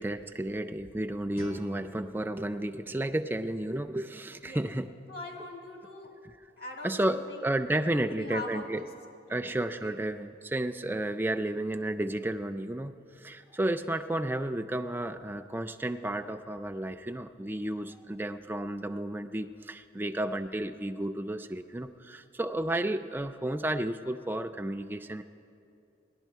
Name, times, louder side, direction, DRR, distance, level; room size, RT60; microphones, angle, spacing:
voice 1, 0.0-4.9 6.8-8.8 9.3-25.2, right 1 dB, 10° right, 8 dB, 0.3 m, -32 dB
Guitar, 1.3-4.1, right 1 dB, 30° left, 0.7 m, -50 dB
voice 2, 5.1-6.1 6.6-7.5 7.9-8.9 9.3-10.0, left 2 dB, 55° left, 1 dB, 1.9 m, -42 dB
17.0 x 11.0 x 4.6 m, 2.6 s
head